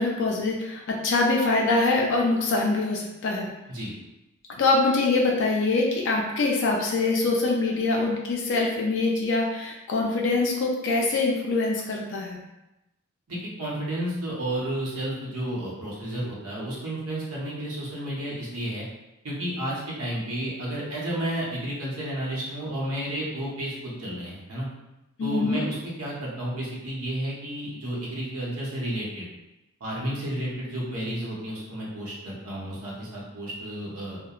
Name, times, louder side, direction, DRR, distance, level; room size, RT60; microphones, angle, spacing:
voice 1, 0.0-3.5 4.6-12.4 25.2-25.6, left 3 dB, 60° left, 0 dB, 0.4 m, -24 dB
voice 2, 13.3-18.8 19.2-24.7 25.2-29.3 29.8-34.2, right 1 dB, 85° right, -5 dB, 0.8 m, -32 dB
2.8 x 2.1 x 2.3 m, 0.94 s
head